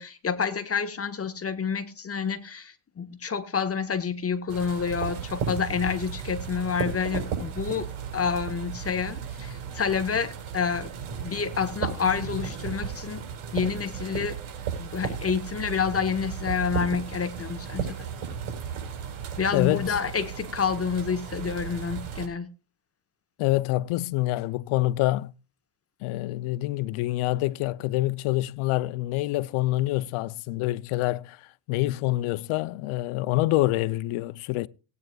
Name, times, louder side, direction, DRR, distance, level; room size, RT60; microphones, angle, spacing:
voice 1, 0.0-7.9 8.1-10.9 11.2-13.2 13.5-14.4 14.8-18.1 19.4-22.5, left 6 dB, 25° left, 1.5 m, -28 dB
sound 1, 4.5-22.3, right 7 dB, 70° right, 5.2 m, -35 dB
voice 2, 19.5-19.8 23.4-25.3 26.0-34.7, left 17 dB, 75° left, 0.8 m, -26 dB
19.0 x 9.4 x 2.4 m
cardioid pair, 110°, 50 cm